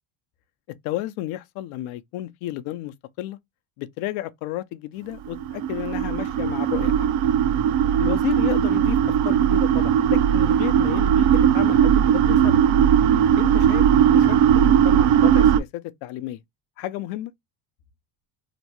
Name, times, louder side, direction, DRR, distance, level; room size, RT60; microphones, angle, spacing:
voice 1, 0.8-3.4 3.8-7.1 8.0-12.6 13.4-13.9 14.1-16.4 16.8-17.3, left 15 dB, 85° left, 0.6 m, -32 dB
sound 1, 5.3-15.6, right 9 dB, 70° right, 0.6 m, -18 dB
2.9 x 2.2 x 2.9 m
cardioid pair, 125°, 48 cm